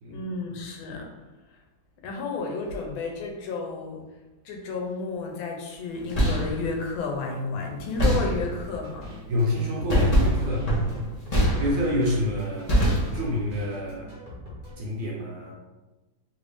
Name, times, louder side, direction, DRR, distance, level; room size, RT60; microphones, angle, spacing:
voice 1, 0.1-1.1 1.5-1.6 2.0-4.0 4.4-9.2, left 4 dB, 80° left, 1 dB, 1.4 m, -32 dB
sound 1, 5.9-6.6 8.0-8.7 9.9-12.1 12.7-13.5, equal, 40° left, 0.5 m, -23 dB
sound 2, 7.7-14.7, left 1 dB, 35° right, 0.9 m, -43 dB
voice 2, 9.3-10.8 11.3-12.7 13.1-14.1 14.8-15.5, left 1 dB, 65° right, -4 dB, 1.2 m, -28 dB
3.4 x 2.5 x 3.4 m, 1.1 s
omnidirectional pair, 2.2 m